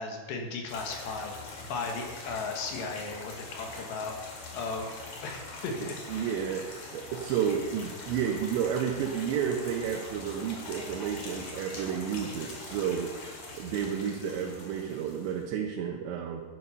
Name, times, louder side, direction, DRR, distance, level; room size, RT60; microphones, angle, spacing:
voice 1, 0.0-1.4 1.7-4.1 4.5-4.9 5.2-6.4, left 4 dB, 70° left, 2 dB, 3.5 m, -36 dB
sound 1, 0.7-15.5, left 3 dB, 45° left, 3.3 m, -43 dB
voice 2, 5.8-16.4, right 8 dB, 75° right, 0 dB, 3.1 m, -31 dB
12.0 x 11.5 x 5.6 m, 1.4 s
omnidirectional pair, 5.5 m